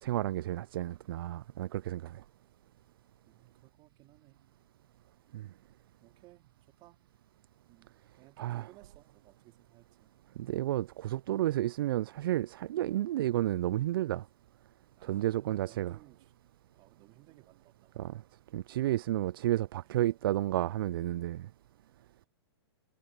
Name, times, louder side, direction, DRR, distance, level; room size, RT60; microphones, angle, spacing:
voice 1, 0.0-2.2 5.3-5.5 8.4-8.6 10.4-14.2 15.0-15.9 18.0-18.2 18.5-21.5, right 14 dB, 60° right, 0.4 m, -31 dB
voice 2, 3.2-4.5 6.0-7.0 7.7-10.1 15.0-16.3 16.7-18.2 19.8-20.0, right 19 dB, 35° right, 3.5 m, -60 dB
hypercardioid pair, 125°, 14 cm